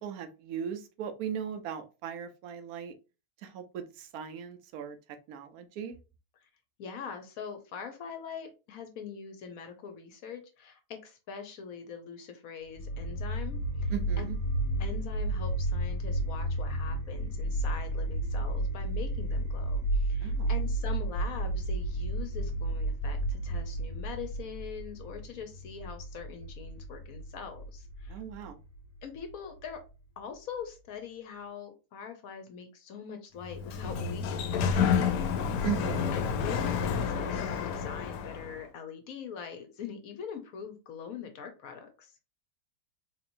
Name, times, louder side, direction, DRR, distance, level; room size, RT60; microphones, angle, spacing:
voice 1, 0.0-2.9 3.4-5.0 5.3-6.0 13.9-14.3 20.2-20.5 28.1-28.6 35.6-36.1, right 8 dB, 70° right, 1.1 m, -38 dB
voice 2, 6.8-14.3 14.8-28.2 29.0-29.8 30.2-35.6 36.1-42.1, left 6 dB, 65° left, 1.1 m, -43 dB
sound 1, 12.7-29.8, right 1 dB, 25° left, 1.0 m, -32 dB
Sliding door, 33.4-38.6, left 6 dB, 85° left, 1.2 m, -29 dB
4.1 x 2.9 x 2.6 m
omnidirectional pair, 1.7 m